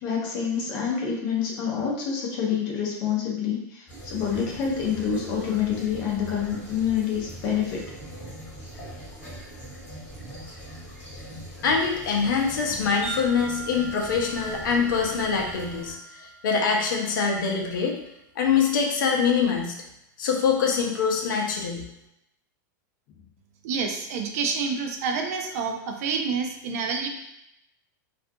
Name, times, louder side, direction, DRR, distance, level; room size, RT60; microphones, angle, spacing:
voice 1, 0.0-7.8 12.7-12.8, left 7 dB, 35° left, -2 dB, 0.6 m, -27 dB
sound 1, 3.9-15.9, equal, 15° left, 1.1 m, -42 dB
voice 2, 11.6-18.0 18.4-19.8 20.2-21.9, left 5 dB, 90° left, 1 dB, 0.6 m, -24 dB
Wind chime, 13.0-17.3, right 4 dB, 25° right, 0.8 m, -41 dB
voice 3, 23.6-27.1, right 5 dB, 50° right, 4 dB, 0.4 m, -28 dB
2.4 x 2.3 x 2.6 m, 0.83 s
supercardioid pair, 170°, 10 cm